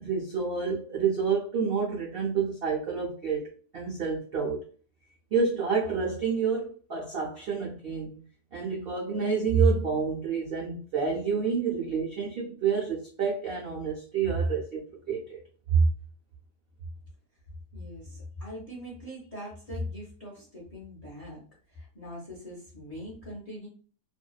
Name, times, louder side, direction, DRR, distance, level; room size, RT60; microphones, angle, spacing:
voice 1, 0.0-4.6 5.3-8.2 8.5-15.4 15.7-15.9, right 5 dB, 70° right, -4 dB, 0.5 m, -28 dB
voice 2, 17.7-21.4 21.7-23.7, left 1 dB, 40° left, -5 dB, 0.5 m, -41 dB
2.6 x 2.2 x 2.2 m, 0.40 s
omnidirectional pair, 1.7 m